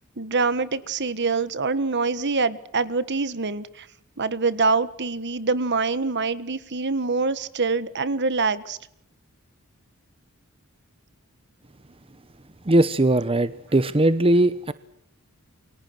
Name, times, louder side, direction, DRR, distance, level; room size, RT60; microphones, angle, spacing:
voice 1, 0.2-3.9 4.2-8.8, right 4 dB, 55° right, 16 dB, 1.5 m, -25 dB
voice 2, 12.6-14.7, right 1 dB, 25° right, 14 dB, 0.9 m, -19 dB
29.5 x 23.5 x 6.2 m, 0.76 s
head